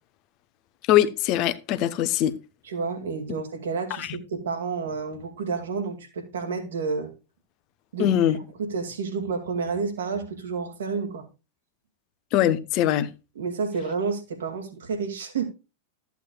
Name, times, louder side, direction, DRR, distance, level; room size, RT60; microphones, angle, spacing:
voice 1, 0.9-2.3 4.0-4.1 8.0-8.4 12.3-13.1, left 12 dB, 40° left, 0.9 m, -22 dB
voice 2, 2.6-7.1 7.9-8.2 8.6-11.2 13.4-15.5, right 5 dB, 65° right, 2.3 m, -30 dB
14.0 x 8.3 x 2.3 m
figure-of-eight pair, 90°, 0 cm